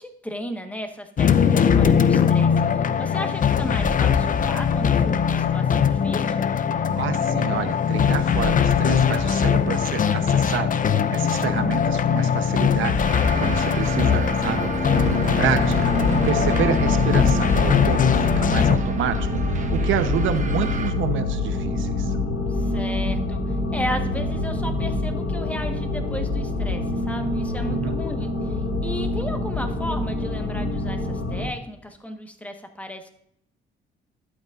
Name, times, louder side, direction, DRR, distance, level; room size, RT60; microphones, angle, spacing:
voice 1, 0.0-6.4 14.0-14.4 22.5-33.1, equal, 5° left, 5 dB, 1.3 m, -35 dB
sound 1, 1.2-18.8, left 7 dB, 45° left, 0.6 m, -21 dB
voice 2, 6.9-13.0 13.4-14.7 15.1-15.9 16.2-19.2 19.5-22.1 27.7-28.0, right 8 dB, 75° right, 9 dB, 0.9 m, -28 dB
sound 2, 13.0-20.9, right 4 dB, 40° right, 1.1 m, -31 dB
sound 3, 14.9-31.5, left 2 dB, 85° left, 2.4 m, -25 dB
12.0 x 8.3 x 2.5 m, 0.72 s
cardioid pair, 90°, 20 cm